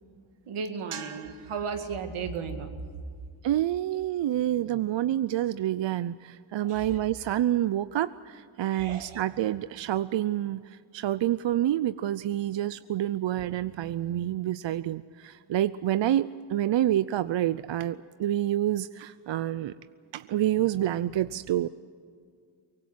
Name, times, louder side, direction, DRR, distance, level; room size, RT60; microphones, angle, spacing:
voice 1, 0.5-2.7 6.6-7.0 8.7-9.2, right 5 dB, 90° right, 6 dB, 2.1 m, -35 dB
voice 2, 3.4-19.7 20.1-21.7, right 12 dB, 65° right, 15 dB, 0.6 m, -28 dB
24.0 x 19.0 x 7.8 m, 2.2 s
cardioid pair, 55°, 49 cm